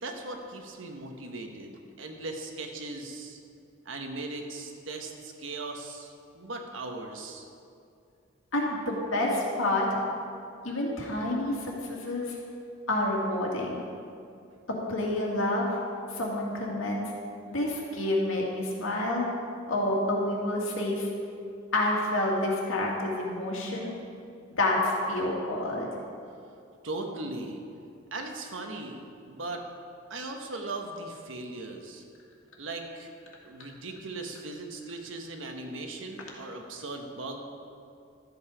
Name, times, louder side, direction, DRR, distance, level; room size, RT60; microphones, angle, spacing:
voice 1, 0.0-3.4 3.8-7.5 26.8-27.6 28.1-29.6 30.1-32.0 32.6-33.1 33.4-37.4, right 2 dB, 75° right, 3 dB, 1.2 m, -38 dB
voice 2, 8.5-9.9 10.6-12.4 12.9-13.8 14.7-15.7 16.1-17.0 17.5-19.2 19.7-21.1 21.7-23.9 24.6-25.9, left 1 dB, 80° left, -2 dB, 2.2 m, -28 dB
12.5 x 8.1 x 5.0 m, 2.4 s
head